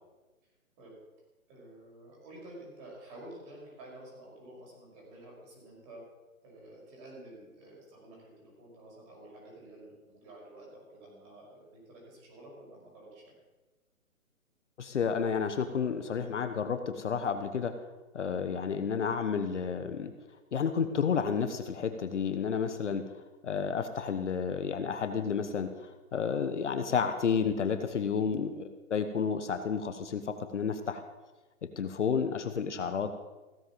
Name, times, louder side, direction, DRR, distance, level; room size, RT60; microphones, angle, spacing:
voice 1, 1.5-6.0 6.4-13.2, right 1 dB, 20° right, -3 dB, 5.6 m, -50 dB
voice 2, 14.8-17.7 18.1-20.1 20.5-23.2 23.4-31.0 31.8-33.2, left 6 dB, 55° left, 9 dB, 1.2 m, -31 dB
16.5 x 7.9 x 7.4 m, 1.2 s
hypercardioid pair, 160°, 43 cm